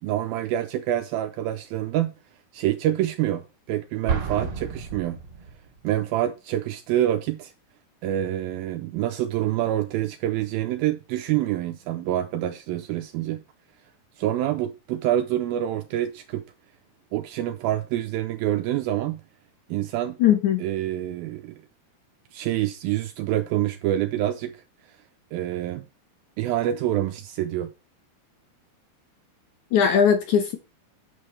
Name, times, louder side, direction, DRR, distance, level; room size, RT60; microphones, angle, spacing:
voice 1, 0.0-2.1 2.5-5.2 5.8-7.5 8.0-13.4 14.2-16.4 17.1-19.2 19.7-20.2 20.6-21.6 22.3-24.6 25.3-25.9 26.4-27.7, right 12 dB, 80° right, 2.2 m, -26 dB
Explosion, 4.1-5.8, right 5 dB, 45° right, 1.9 m, -31 dB
voice 2, 20.2-20.6 29.7-30.6, left 8 dB, 70° left, 1.9 m, -19 dB
9.0 x 7.6 x 3.2 m
omnidirectional pair, 4.7 m